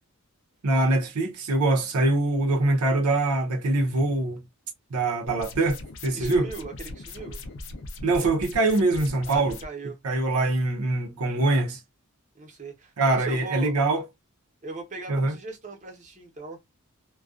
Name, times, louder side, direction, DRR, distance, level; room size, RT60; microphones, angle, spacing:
voice 1, 0.6-4.4 4.9-6.5 8.0-9.6 10.0-11.8 13.0-14.1 15.1-15.3, right 2 dB, 85° right, 0.6 m, -23 dB
sound 1, 5.3-9.7, left 2 dB, 60° left, 0.5 m, -40 dB
voice 2, 6.2-7.4 9.3-10.0 12.3-13.8 14.6-16.6, right 3 dB, 35° right, 0.8 m, -39 dB
2.3 x 2.2 x 2.4 m
head